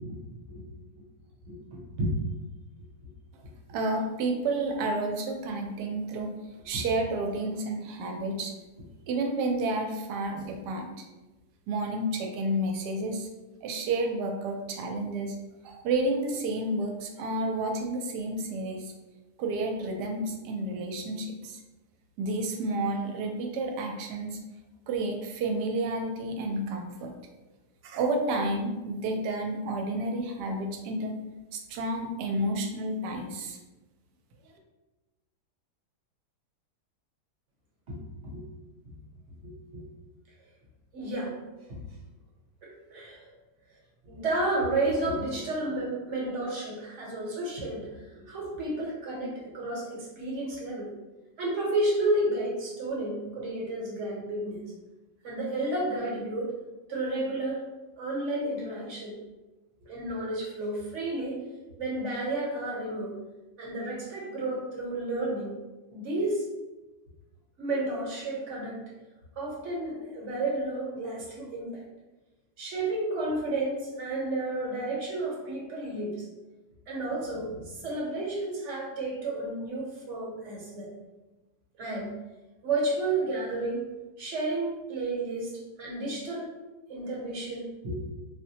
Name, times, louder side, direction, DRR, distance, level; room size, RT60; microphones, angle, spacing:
voice 1, 1.4-2.1 6.7-6.8 37.9-38.4 39.4-39.8 40.9-41.4 42.9-43.3 44.0-50.9 51.4-54.6 55.2-56.5 56.9-57.6 58.0-59.2 59.8-61.4 61.8-63.1 63.6-65.5 65.9-66.4 67.6-68.8 69.4-71.8 72.6-76.3 76.9-80.9 81.8-82.1 82.6-83.8 84.2-85.5 85.8-86.5 86.9-88.0, right 2 dB, 55° right, -4 dB, 1.1 m, -31 dB
voice 2, 3.7-6.3 6.6-8.5 9.1-10.9 11.7-13.3 13.6-15.4 15.6-18.9 19.4-21.6 22.2-24.4 24.9-27.1 27.8-31.1 31.5-33.6, right 2 dB, 85° right, 3 dB, 1.2 m, -30 dB
3.9 x 2.1 x 2.8 m, 1.1 s
omnidirectional pair, 1.8 m